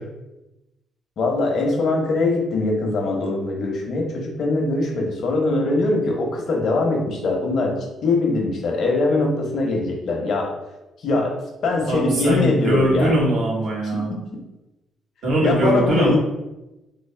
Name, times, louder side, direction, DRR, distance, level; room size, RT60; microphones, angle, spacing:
voice 1, 1.2-7.8 8.0-10.5 11.0-11.3 11.6-13.1 13.9-14.0 15.4-16.2, left 2 dB, 65° left, 0 dB, 0.9 m, -22 dB
voice 2, 11.9-14.1 15.2-16.2, right 1 dB, 75° right, -4 dB, 1.3 m, -21 dB
4.0 x 2.1 x 3.3 m, 0.98 s
cardioid pair, 90°, 0 cm